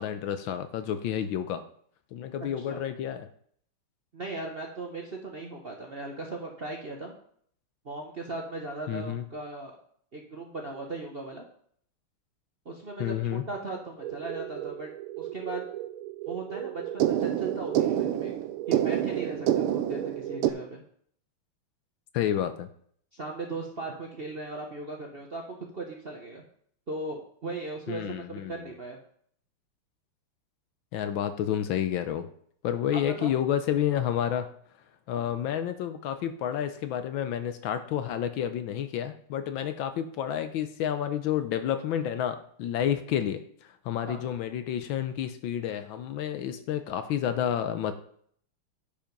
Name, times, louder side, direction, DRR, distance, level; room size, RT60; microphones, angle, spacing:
voice 1, 0.0-1.6 2.1-3.3 8.9-9.2 13.0-13.4 22.1-22.7 27.9-28.7 30.9-32.3 32.6-34.5 35.1-43.4 43.8-47.9, left 10 dB, 70° left, 10 dB, 1.3 m, -30 dB
voice 2, 4.1-7.2 7.8-9.7 10.1-11.4 12.6-14.9 15.2-15.6 16.3-18.3 18.7-20.8 23.1-25.4 25.7-26.4 26.9-29.0 32.9-33.3 35.2-35.3 39.9-40.0 42.8-42.9 44.0-44.2, right 2 dB, 40° right, 0 dB, 0.9 m, -38 dB
sound 1, 14.0-20.5, right 12 dB, 80° right, 1.5 m, -29 dB
10.0 x 5.1 x 5.3 m, 0.62 s
omnidirectional pair, 2.4 m